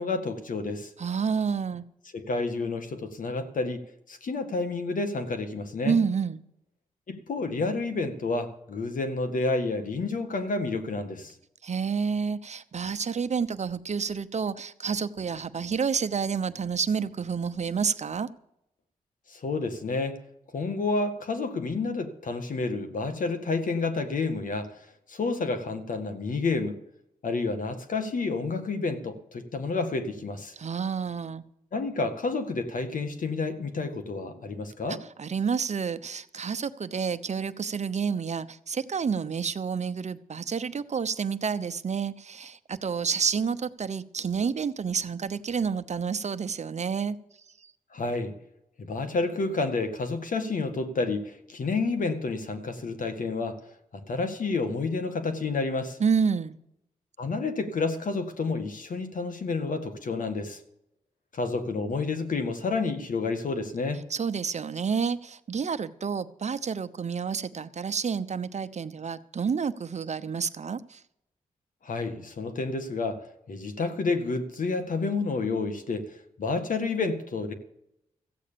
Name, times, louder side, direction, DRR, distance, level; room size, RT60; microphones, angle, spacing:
voice 1, 0.0-0.9 2.1-3.8 4.1-6.0 7.1-11.3 19.3-20.2 20.5-26.8 27.2-30.5 31.7-35.0 47.9-48.3 48.8-53.6 53.9-56.0 57.2-60.6 61.3-64.1 71.8-77.5, left 3 dB, 70° left, 1.9 m, -30 dB
voice 2, 1.0-1.8 5.8-6.4 11.6-18.3 30.6-31.4 34.9-47.2 47.6-47.7 56.0-56.6 64.1-71.0, right 6 dB, 55° right, 1.0 m, -29 dB
15.0 x 8.6 x 7.0 m
cardioid pair, 50°, 14 cm